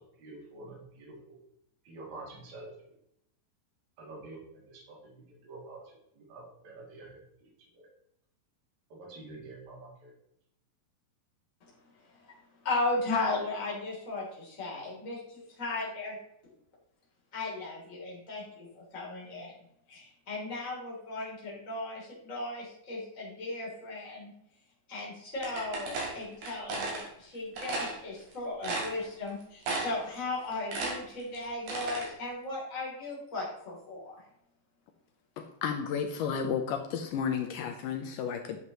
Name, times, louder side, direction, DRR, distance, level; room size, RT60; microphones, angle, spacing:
voice 1, 0.2-1.4 1.8-2.7 4.0-7.5 7.7-7.9 8.9-10.1, right 2 dB, 55° right, -3 dB, 3.6 m, -48 dB
voice 2, 12.6-16.2 17.3-19.5 19.9-24.3 24.9-34.1, left 2 dB, 20° left, -5 dB, 3.1 m, -36 dB
sound 1, 25.4-27.0 27.6-27.9 28.3-28.4 28.6-29.3 29.6-30.1 30.4-32.1, right 3 dB, 70° right, 4.0 m, -34 dB
voice 3, 35.4-38.6, left 7 dB, 80° left, 6 dB, 2.1 m, -32 dB
11.0 x 7.3 x 3.0 m, 0.76 s
omnidirectional pair, 4.3 m